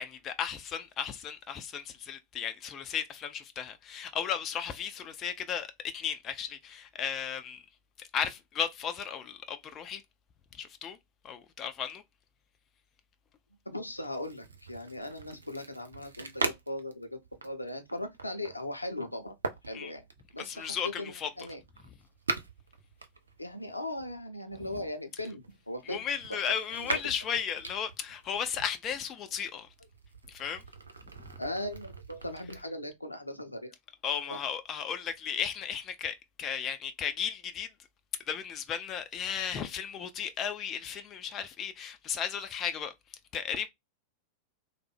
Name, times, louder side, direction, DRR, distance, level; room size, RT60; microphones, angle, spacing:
voice 1, 0.0-7.7 8.0-10.0 10.5-11.0 11.2-12.0 19.7-19.9 20.4-21.3 24.6-24.7 25.9-29.7 30.3-30.6 34.0-37.7 38.3-43.7, left 8 dB, 30° left, 0.4 m, -35 dB
voice 2, 13.7-19.3 19.6-20.0 20.3-21.6 23.4-26.0 26.3-27.0 31.4-33.7 34.3-34.4, left 1 dB, 85° left, 0.5 m, -38 dB
sound 1, 13.8-23.8 24.5-28.7 29.3-32.6, right 3 dB, 75° right, 0.4 m, -41 dB
3.2 x 2.1 x 3.2 m
figure-of-eight pair, 90°, 0 cm